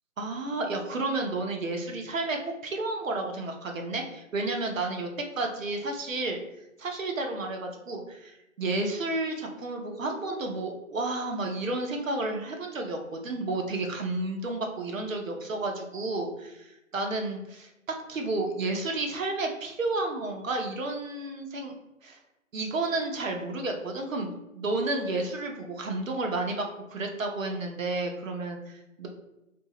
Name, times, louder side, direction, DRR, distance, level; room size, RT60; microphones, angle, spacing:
voice 1, 0.2-5.1 5.4-6.4 6.8-21.7 22.0-22.2 22.5-26.7 26.9-29.1, right 2 dB, 70° right, 3 dB, 0.8 m, -31 dB
3.3 x 2.6 x 3.0 m, 0.92 s
hypercardioid pair, 180°, 41 cm